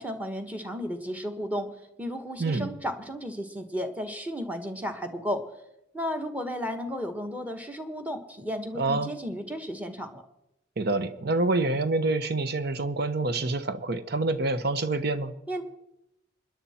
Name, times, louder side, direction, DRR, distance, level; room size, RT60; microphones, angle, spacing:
voice 1, 0.0-5.5 5.9-10.2 15.5-15.6, equal, 10° right, 7 dB, 1.4 m, -33 dB
voice 2, 8.7-9.1 10.8-15.3, right 2 dB, 55° right, 11 dB, 1.1 m, -27 dB
25.5 x 10.5 x 4.4 m, 0.87 s
head